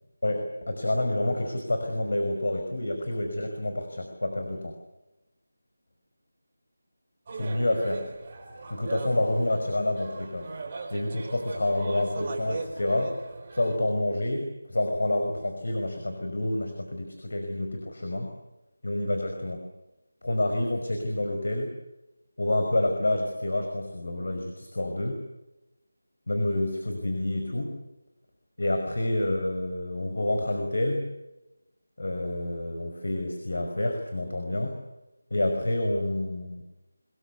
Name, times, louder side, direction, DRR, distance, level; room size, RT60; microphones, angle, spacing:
voice 1, 0.2-4.7 7.3-8.1 8.7-10.5 10.9-13.2 13.5-18.3 18.8-19.7 20.2-21.7 22.4-25.2 26.3-27.8 28.6-31.1 32.0-34.8 35.3-36.6, left 1 dB, 65° left, 5 dB, 5.4 m, -28 dB
sound 1, 7.3-13.8, right 4 dB, 35° right, 5.0 m, -39 dB
26.0 x 21.0 x 8.3 m, 0.98 s
figure-of-eight pair, 165°, 0 cm